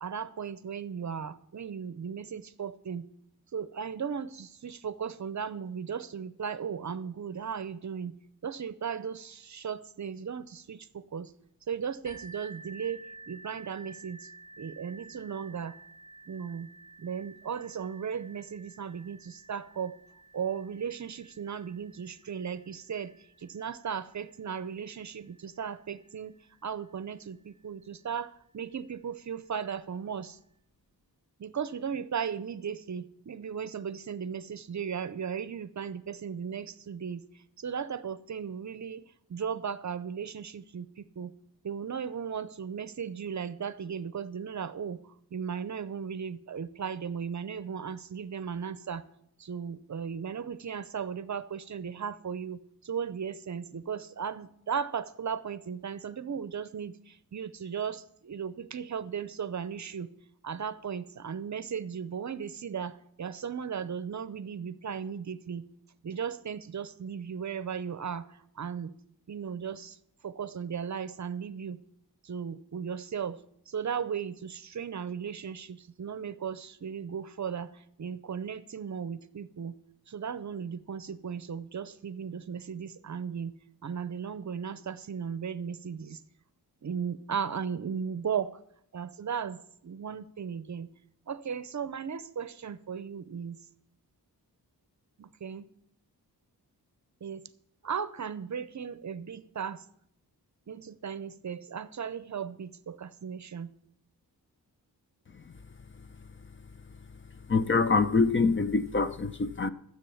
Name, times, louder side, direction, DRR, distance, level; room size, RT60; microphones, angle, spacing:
voice 1, 0.0-3.0 3.5-8.1 8.4-11.3 11.7-14.2 14.6-15.7 16.3-16.7 17.0-19.9 20.3-23.1 23.4-26.3 26.6-30.4 31.4-37.2 37.6-39.0 39.3-41.3 41.6-45.0 45.3-49.0 49.4-52.6 52.8-60.1 60.4-65.6 66.0-68.3 68.6-68.9 69.3-70.0 70.2-71.8 72.2-73.4 73.7-77.7 78.0-79.7 80.1-83.5 83.8-86.2 86.8-88.5 88.9-89.6 89.8-90.9 91.3-93.6 95.2-95.7 97.2-97.4 97.8-99.8 100.7-103.7, right 7 dB, 50° right, 0.6 m, -36 dB
sound 1, 12.0-27.6 28.4-28.5 29.0-29.1, right 3 dB, 50° left, 4.2 m, -53 dB
voice 2, 107.5-109.7, left 4 dB, 30° left, 0.7 m, -25 dB
13.5 x 7.6 x 7.1 m
wide cardioid pair, 115°, 38 cm